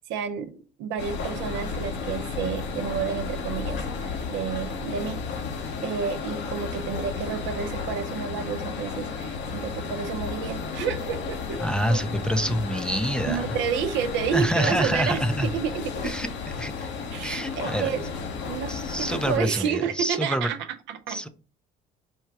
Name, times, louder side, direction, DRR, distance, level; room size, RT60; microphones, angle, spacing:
voice 1, 0.0-5.2 5.8-11.6 11.9-12.0 13.2-16.1 17.1-18.1 18.4-21.3, right 7 dB, 70° right, 9 dB, 0.7 m, -30 dB
sound 1, 1.0-19.4, left 5 dB, 65° left, 0.9 m, -33 dB
voice 2, 11.6-13.5 14.3-15.5 16.0-16.3 16.6-16.9 17.2-17.9 18.7-20.5 21.1-21.3, equal, 5° left, 8 dB, 0.5 m, -26 dB
4.4 x 2.3 x 4.6 m, 0.36 s
supercardioid pair, 70°, 20 cm